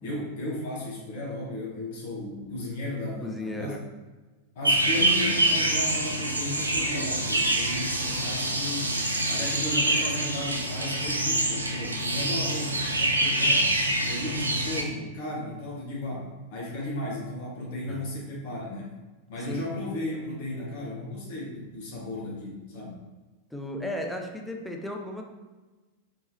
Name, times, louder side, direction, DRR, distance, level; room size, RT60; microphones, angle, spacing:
voice 1, 0.0-3.7 4.5-19.0 19.3-22.9, left 1 dB, 50° left, -4 dB, 1.2 m, -35 dB
voice 2, 3.2-3.8 17.9-18.1 19.5-19.7 23.5-25.2, left 1 dB, 5° left, 2 dB, 0.4 m, -35 dB
sound 1, 4.6-14.8, right 1 dB, 85° right, 0.4 m, -26 dB
3.5 x 2.9 x 2.8 m, 1.2 s
figure-of-eight pair, 90°, 0 cm